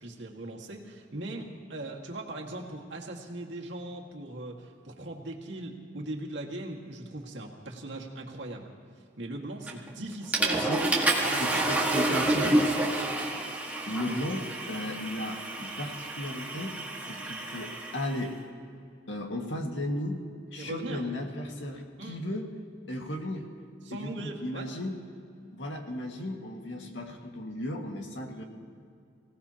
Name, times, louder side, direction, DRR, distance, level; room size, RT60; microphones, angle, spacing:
voice 1, 0.0-8.7 9.2-11.0 11.2-11.7 12.1-12.9 14.0-14.1 20.6-21.1 22.0-22.2 23.8-24.7, right 2 dB, 75° right, 0 dB, 2.0 m, -39 dB
Water / Toilet flush, 9.7-9.9 10.3-18.2, right 2 dB, 10° right, 1.7 m, -29 dB
voice 2, 10.6-10.9 11.3-12.7 13.9-16.8 17.0-18.4 19.1-20.2 20.5-22.5 22.9-23.5 23.9-25.0 25.5-28.4, left 1 dB, 75° left, 2 dB, 1.9 m, -35 dB
25.0 x 17.5 x 2.9 m, 2.4 s
head